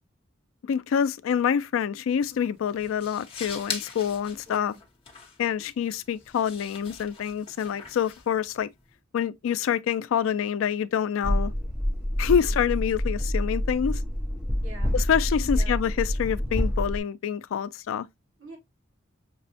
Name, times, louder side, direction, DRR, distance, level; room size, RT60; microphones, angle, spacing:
voice 1, 0.7-4.7 5.4-8.7 9.1-11.5 12.2-14.0 14.9-18.1, left 8 dB, 80° left, 0.3 m, -26 dB
sound 1, 2.1-9.0, left 5 dB, 25° left, 0.8 m, -42 dB
voice 2, 4.5-4.8 12.2-12.6 14.6-14.9 15.5-15.7 18.4-18.6, right 1 dB, 65° right, 1.7 m, -45 dB
sound 2, 11.2-17.0, equal, 5° right, 0.5 m, -27 dB
5.9 x 2.1 x 2.6 m
head